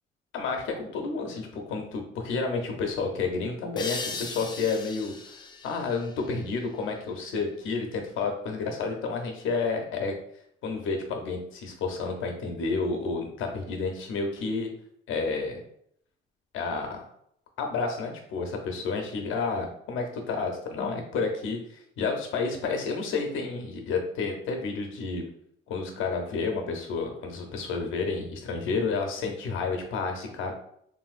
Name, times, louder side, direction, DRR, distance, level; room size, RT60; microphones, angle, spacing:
voice 1, 0.3-5.4 5.6-10.2 10.6-14.7 15.1-15.6 16.5-17.1 17.6-25.2 25.7-30.5, left 4 dB, 80° left, 3 dB, 0.7 m, -30 dB
sound 1, 3.8-7.2, left 4 dB, 20° left, 0.4 m, -39 dB
3.3 x 2.6 x 2.4 m, 0.69 s
cardioid pair, 90°, 20 cm